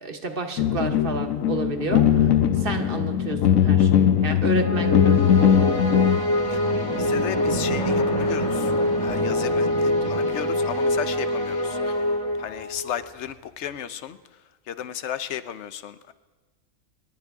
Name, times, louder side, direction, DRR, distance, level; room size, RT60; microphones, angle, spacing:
voice 1, 0.0-5.2, right 3 dB, 45° right, 6 dB, 1.1 m, -31 dB
sound 1, 0.6-6.2, left 9 dB, 85° left, 1.1 m, -20 dB
sound 2, 4.5-13.0, left 1 dB, 25° left, 1.2 m, -24 dB
voice 2, 7.0-8.7 9.0-14.2 14.7-16.1, left 10 dB, 65° left, 13 dB, 0.9 m, -34 dB
25.0 x 11.5 x 3.5 m, 1.3 s
omnidirectional pair, 1.4 m